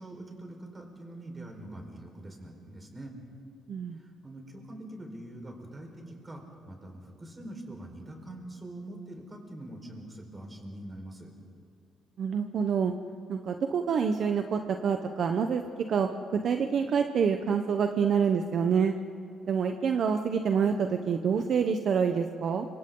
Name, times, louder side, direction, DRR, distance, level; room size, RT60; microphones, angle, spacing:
voice 1, 0.0-3.1 4.0-11.3, right 1 dB, 20° right, 1 dB, 4.6 m, -44 dB
voice 2, 12.2-12.9 13.3-15.6 15.9-18.9 19.5-22.7, right 6 dB, 55° right, 6 dB, 1.0 m, -27 dB
30.0 x 26.0 x 3.9 m, 2.5 s
cardioid pair, 120°, 0 cm